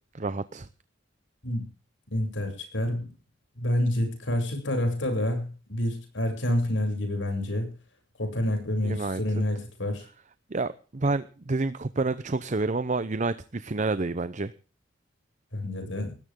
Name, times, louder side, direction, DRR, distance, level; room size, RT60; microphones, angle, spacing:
voice 1, 0.1-0.7 8.8-9.4 10.5-14.5, right 3 dB, 40° right, 13 dB, 0.7 m, -29 dB
voice 2, 2.1-3.1 3.6-7.7 8.2-10.1 15.5-16.1, left 1 dB, 90° left, 4 dB, 7.6 m, -28 dB
19.5 x 17.0 x 3.8 m, 0.38 s
head